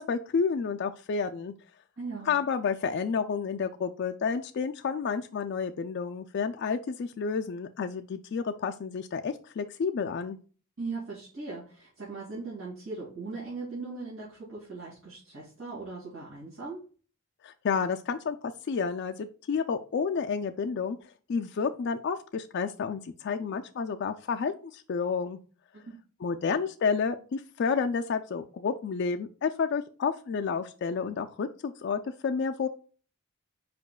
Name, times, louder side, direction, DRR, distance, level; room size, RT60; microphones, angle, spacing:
voice 1, 0.0-1.5 2.2-10.4 17.4-18.4 18.7-21.0 21.3-25.4 26.2-32.7, left 5 dB, 50° left, 6 dB, 0.3 m, -30 dB
voice 2, 2.0-2.3 10.8-16.8 25.7-25.9, right 3 dB, 60° right, -8 dB, 2.3 m, -39 dB
5.0 x 4.8 x 2.2 m, 0.38 s
head